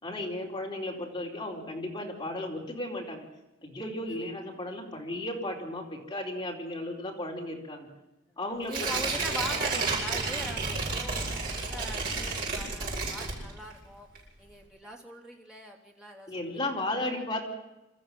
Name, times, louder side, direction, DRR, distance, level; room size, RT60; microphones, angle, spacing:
voice 1, 0.0-3.2 3.6-7.9 8.4-8.9 16.3-17.4, left 1 dB, 20° left, -1 dB, 4.3 m, -35 dB
voice 2, 8.7-16.8, equal, 5° right, -1 dB, 3.3 m, -42 dB
Tearing, 8.7-13.8 14.2-14.3, right 4 dB, 50° right, 7.8 m, -31 dB
26.5 x 14.0 x 7.6 m, 0.99 s
head